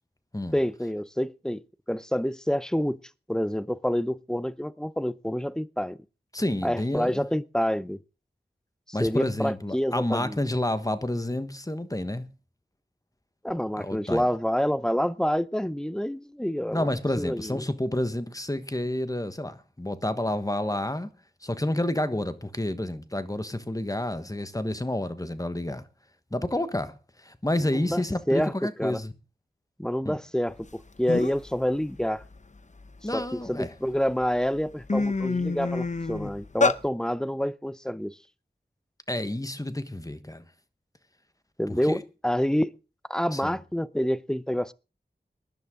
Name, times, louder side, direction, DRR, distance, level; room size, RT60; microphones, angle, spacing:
voice 1, 0.5-1.6 1.9-3.0 3.3-6.0 6.6-8.0 9.0-10.4 13.4-16.9 17.2-17.6 27.7-28.0 28.3-29.0 29.8-32.2 33.1-38.1 41.6-42.7 43.1-44.7, equal, 5° left, 0.6 m, -27 dB
voice 2, 6.3-7.3 8.9-12.3 13.8-14.3 16.7-21.1 21.4-25.9 26.3-29.1 30.0-30.2 33.0-33.7 39.1-40.4 41.7-42.0 43.3-43.6, left 1 dB, 20° left, 1.3 m, -29 dB
sound 1, 30.7-30.8 31.1-31.5 32.0-33.5 34.1-34.3 34.6-36.8, left 3 dB, 40° left, 0.8 m, -27 dB
20.0 x 10.5 x 3.8 m
wide cardioid pair, 55°, 18 cm